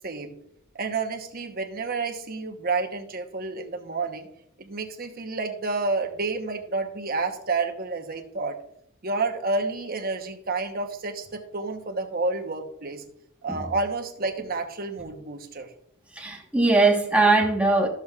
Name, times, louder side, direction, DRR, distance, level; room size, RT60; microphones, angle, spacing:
voice 1, 0.0-0.3 0.7-4.3 4.6-8.5 9.0-13.0 13.4-15.7, right 3 dB, 45° right, 1.0 m, -30 dB
voice 2, 16.2-17.9, right 3 dB, 5° right, 1.2 m, -20 dB
12.5 x 7.1 x 2.4 m
head